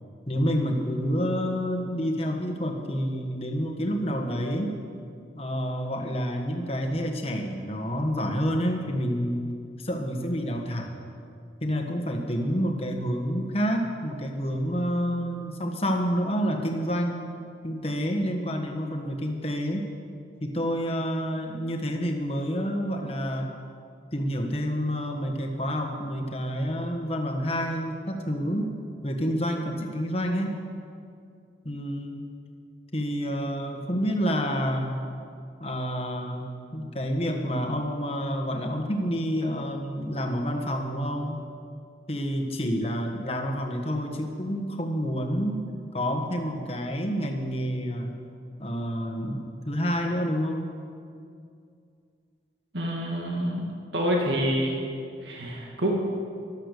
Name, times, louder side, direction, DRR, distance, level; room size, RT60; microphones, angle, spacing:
voice 1, 0.3-4.7 5.3-11.0 11.6-17.2 17.6-19.9 20.4-23.6 24.1-28.7 29.0-30.5 31.6-32.3 32.9-35.0 35.6-41.4 42.1-45.6 45.9-48.1 48.6-50.7, equal, 30° left, 3 dB, 1.5 m, -28 dB
voice 2, 52.7-53.7 53.9-54.9 55.2-55.9, equal, 70° right, -1 dB, 2.2 m, -27 dB
14.5 x 12.5 x 6.8 m, 2.4 s
head